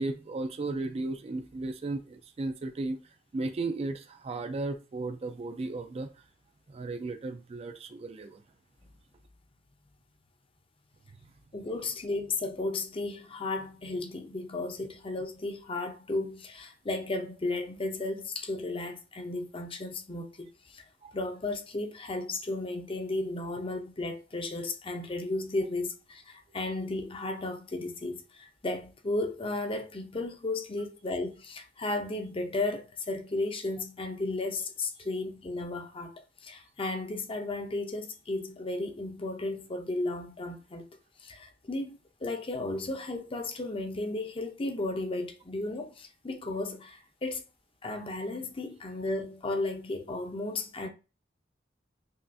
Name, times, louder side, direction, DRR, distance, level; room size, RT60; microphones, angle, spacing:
voice 1, 0.0-3.0 3.3-6.1 6.7-8.4 21.0-21.1, right 2 dB, 35° right, 0.3 m, -35 dB
voice 2, 11.5-20.8 21.1-40.9 41.2-47.4 47.8-50.9, left 2 dB, 30° left, 0.6 m, -34 dB
5.5 x 2.4 x 2.6 m
head